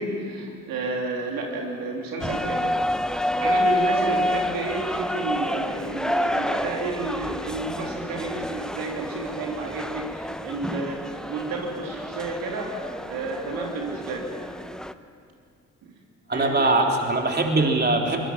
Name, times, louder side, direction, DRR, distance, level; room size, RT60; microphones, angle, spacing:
voice 1, 0.0-2.8 3.4-14.3 15.8-15.9 16.3-16.7, right 3 dB, 65° right, 0 dB, 3.3 m, -31 dB
sound 1, 2.2-14.9, left 1 dB, ahead, 0.9 m, -28 dB
voice 2, 16.3-18.2, right 2 dB, 25° right, 1 dB, 3.5 m, -22 dB
22.5 x 21.5 x 7.4 m, 2.4 s
hypercardioid pair, 45°, 39 cm